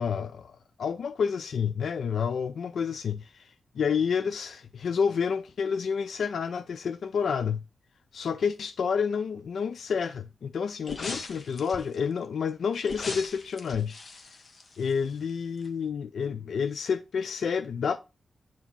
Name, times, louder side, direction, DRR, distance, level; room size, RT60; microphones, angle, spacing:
voice 1, 0.0-7.6 8.1-14.0 14.8-18.0, left 6 dB, 75° left, 0.3 m, -29 dB
sound 1, 10.8-12.0 12.8-15.3 15.6-15.7, left 3 dB, 45° left, 0.8 m, -39 dB
7.2 x 3.0 x 5.4 m
wide cardioid pair, 160°, 0 cm